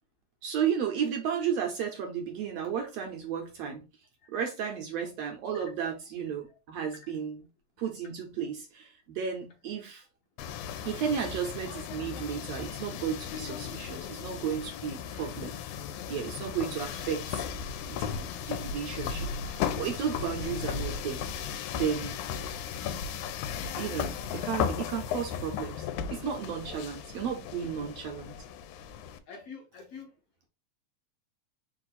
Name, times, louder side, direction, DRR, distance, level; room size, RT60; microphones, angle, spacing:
voice 1, 0.4-3.8 4.3-7.4 7.8-10.0 10.8-15.5 16.1-17.4 17.9-21.2 21.7-22.2 23.7-28.3, right 7 dB, 75° right, 1.6 m, -33 dB
sound 1, 10.4-29.2, left 7 dB, 85° left, 2.0 m, -36 dB
voice 2, 27.6-27.9 29.3-30.1, left 5 dB, 70° left, 1.5 m, -47 dB
4.6 x 2.4 x 4.0 m
omnidirectional pair, 3.4 m